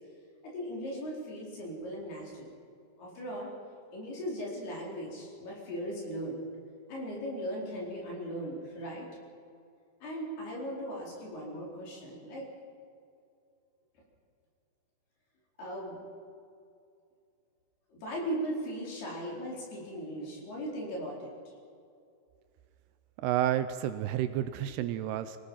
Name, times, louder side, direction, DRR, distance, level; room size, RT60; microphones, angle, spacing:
voice 1, 0.4-2.5 3.0-3.5 3.9-6.4 6.9-9.1 10.0-12.5 15.6-16.0 17.9-21.3, equal, 65° left, -3 dB, 6.3 m, -38 dB
voice 2, 23.2-25.4, right 12 dB, 80° right, 11 dB, 2.6 m, -30 dB
26.0 x 17.5 x 5.7 m, 2.4 s
omnidirectional pair, 5.0 m